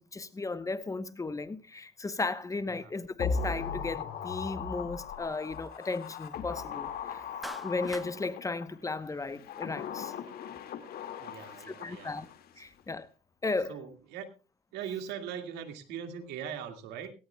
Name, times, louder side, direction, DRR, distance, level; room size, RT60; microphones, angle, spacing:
voice 1, 0.0-7.2 7.6-10.1 11.8-12.3 12.6-13.1 13.4-13.8, left 3 dB, 20° left, 1.0 m, -35 dB
sound 1, 3.2-8.7 9.3-12.5 12.8-12.9, left 6 dB, 65° left, 2.1 m, -38 dB
Clapping, 7.4-8.1, equal, ahead, 1.2 m, -42 dB
voice 2, 11.2-12.1 13.7-14.3 14.7-17.1, right 8 dB, 85° right, 2.1 m, -40 dB
17.5 x 17.5 x 2.3 m
cardioid pair, 110°, 17 cm